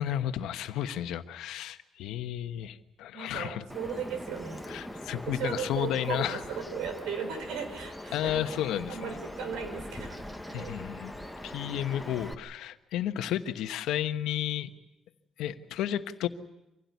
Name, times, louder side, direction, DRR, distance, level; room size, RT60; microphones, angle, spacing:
voice 1, 0.0-3.6 4.7-6.4 8.1-9.0 10.5-11.1 11.4-14.7 15.4-16.3, left 11 dB, 85° left, 9 dB, 1.2 m, -32 dB
voice 2, 3.1-4.6 5.1-8.6 8.9-10.8, right 6 dB, 90° right, 8 dB, 4.1 m, -37 dB
Bird vocalization bird call bird song, 3.7-12.3, left 1 dB, ahead, 1.1 m, -42 dB
25.0 x 16.5 x 9.5 m, 0.96 s
cardioid pair, 160°, 0 cm